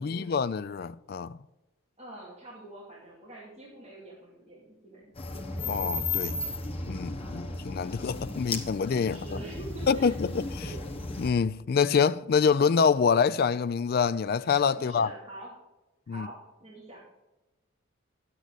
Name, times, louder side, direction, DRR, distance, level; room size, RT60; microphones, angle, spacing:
voice 1, 0.0-1.4 5.7-6.4 6.8-9.4 9.9-10.6 11.2-15.1 16.1-16.3, left 6 dB, 45° left, 0.3 m, -26 dB
voice 2, 2.0-5.1 7.2-7.6 9.1-10.2 10.6-10.8 14.8-15.5 16.1-16.4 16.6-17.0, right 2 dB, 30° right, 2.4 m, -45 dB
sound 1, 5.2-11.3, left 3 dB, 25° left, 0.9 m, -35 dB
10.5 x 8.1 x 4.0 m
head